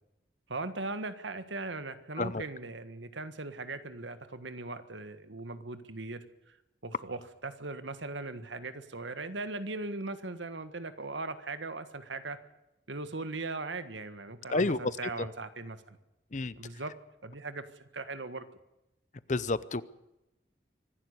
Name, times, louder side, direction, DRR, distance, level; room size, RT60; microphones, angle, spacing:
voice 1, 0.5-6.6 6.8-12.4 12.9-16.0 16.6-16.9 17.2-18.4, right 3 dB, 85° right, 11 dB, 1.6 m, -39 dB
voice 2, 19.3-19.8, left 3 dB, 40° left, 17 dB, 0.7 m, -29 dB
24.5 x 11.5 x 9.7 m, 0.94 s
head